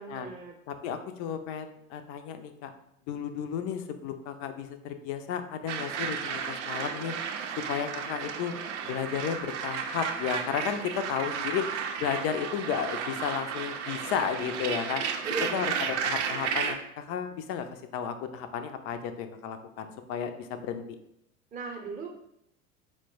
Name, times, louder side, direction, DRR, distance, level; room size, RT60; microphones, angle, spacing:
voice 1, 0.0-0.6 15.2-15.8 21.5-22.1, right 3 dB, 20° right, 1 dB, 0.7 m, -37 dB
voice 2, 0.7-2.7 3.1-7.1 7.7-8.5 8.8-11.7 12.0-15.0 15.5-15.7 16.0-20.8, left 8 dB, 35° left, 8 dB, 0.5 m, -33 dB
sound 1, 5.7-16.8, right 7 dB, 55° right, 0.6 m, -33 dB
4.3 x 2.1 x 4.4 m, 0.77 s
figure-of-eight pair, 75°, 41 cm